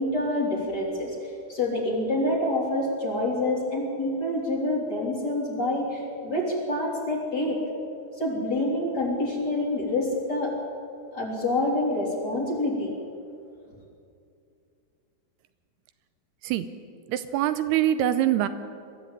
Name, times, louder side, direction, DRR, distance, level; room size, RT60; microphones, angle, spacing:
voice 1, 0.0-7.6 8.2-10.5 11.1-12.9, left 1 dB, 25° left, -2 dB, 3.6 m, -27 dB
voice 2, 17.1-18.5, right 12 dB, 80° right, 11 dB, 2.7 m, -24 dB
22.5 x 14.0 x 9.0 m, 2.5 s
omnidirectional pair, 4.8 m